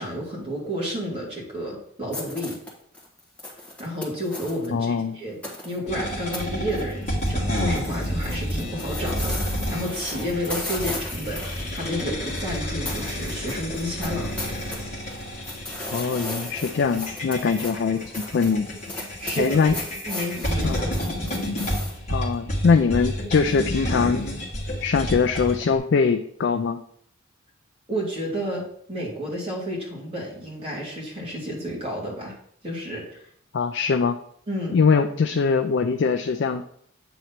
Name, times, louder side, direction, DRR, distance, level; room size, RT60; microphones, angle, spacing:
voice 1, 0.0-2.6 3.8-5.4 5.6-14.3 19.2-19.6 20.1-21.1 27.9-32.4 32.6-33.2 34.5-34.8, equal, 25° right, -4 dB, 2.0 m, -31 dB
sound 1, 2.1-4.7 5.4-5.8 6.3-6.4 6.7-7.3 7.6-12.6 12.9-14.8 15.1-22.0, left 2 dB, 5° left, 1.2 m, -36 dB
voice 2, 4.7-5.2 15.9-18.7 19.4-19.7 20.6-20.8 22.1-24.2 24.8-26.8 33.5-34.2 34.7-36.6, left 5 dB, 55° left, 7 dB, 0.3 m, -22 dB
sound 2, 5.9-25.7, equal, 35° left, 1.5 m, -30 dB
7.9 x 3.1 x 5.7 m, 0.65 s
head